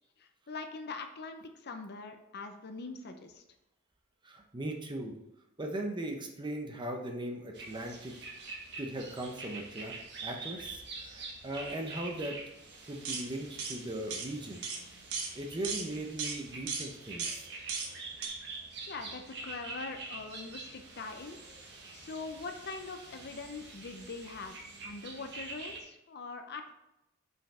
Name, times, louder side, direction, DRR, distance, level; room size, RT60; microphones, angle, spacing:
voice 1, 0.2-3.4 18.9-21.4 21.9-26.7, left 4 dB, 45° left, 6 dB, 0.7 m, -43 dB
voice 2, 4.2-5.1 5.6-8.1 8.4-9.9 10.2-12.4 12.9-14.6 15.3-17.5, right 1 dB, 20° right, 2 dB, 0.8 m, -39 dB
sound 1, 7.5-25.8, right 3 dB, 50° right, 1.5 m, -46 dB
sound 2, 13.0-13.3 13.6-13.8 14.1-14.3 14.6-14.8 15.1-15.3 15.6-15.9 16.2-16.4 16.7-16.9 17.2-17.4 17.7-17.9 18.2-18.3, right 5 dB, 75° right, 1.2 m, -35 dB
5.6 x 5.5 x 4.3 m, 0.91 s
head